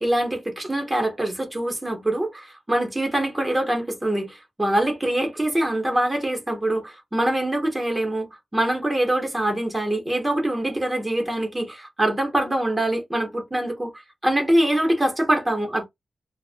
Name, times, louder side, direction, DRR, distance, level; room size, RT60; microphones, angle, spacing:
voice 1, 0.0-13.9 14.2-15.8, right 1 dB, 15° right, 0.8 m, -24 dB
2.4 x 2.0 x 2.4 m
wide cardioid pair, 95°, 0 cm